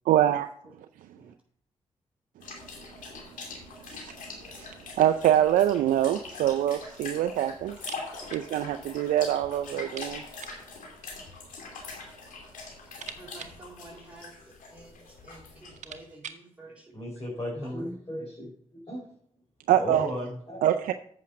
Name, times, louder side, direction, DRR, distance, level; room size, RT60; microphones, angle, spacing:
voice 1, 0.1-0.5 3.9-4.1 4.5-7.8 8.3-10.2 19.7-20.1 20.6-20.9, right 11 dB, 85° right, 0.4 m, -24 dB
sound 1, 2.4-16.0, left 3 dB, 80° left, 2.7 m, -43 dB
sound 2, 7.7-8.5 8.8-8.9 9.2-9.3 9.8-10.7 11.6-12.2 12.5-14.5 15.2-15.3 15.6-16.5, right 7 dB, 65° right, 0.9 m, -46 dB
voice 2, 13.2-17.2 17.6-17.9, right 2 dB, 5° right, 4.8 m, -50 dB
voice 3, 16.9-18.5 18.9-19.1 19.8-20.8, equal, 35° left, 4.5 m, -35 dB
8.5 x 6.2 x 6.3 m
supercardioid pair, 50°, 14 cm